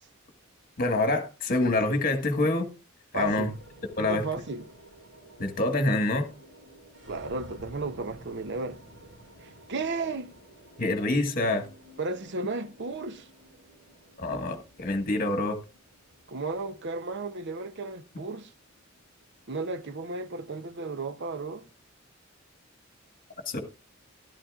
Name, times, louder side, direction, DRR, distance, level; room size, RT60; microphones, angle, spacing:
voice 1, 0.8-2.7 3.1-3.5 4.0-4.2 5.4-6.3 10.8-11.7 14.2-15.6 23.5-23.6, left 2 dB, 45° left, 1.5 m, -26 dB
voice 2, 3.1-3.5 4.0-4.7 7.1-8.8 9.4-10.3 12.0-13.3 16.3-18.5 19.5-21.7, right 3 dB, 60° right, 0.7 m, -34 dB
sound 1, 3.2-21.6, right 1 dB, 85° right, 5.1 m, -53 dB
13.0 x 12.0 x 2.4 m
head